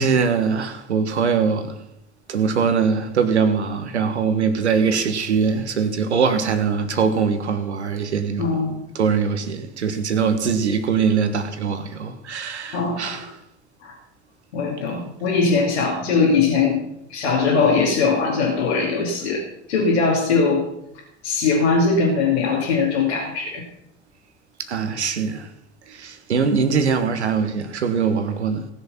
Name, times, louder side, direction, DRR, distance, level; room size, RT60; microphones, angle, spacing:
voice 1, 0.0-1.9 2.3-8.4 8.9-13.2 24.7-25.5 25.9-28.7, right 6 dB, 75° right, 1.4 m, -22 dB
voice 2, 8.4-8.8 12.7-13.3 13.8-13.9 14.5-16.8 17.1-19.4 19.7-20.7 21.2-23.6, left 4 dB, 70° left, 2.9 m, -20 dB
18.5 x 7.0 x 5.8 m
figure-of-eight pair, 70°, 34 cm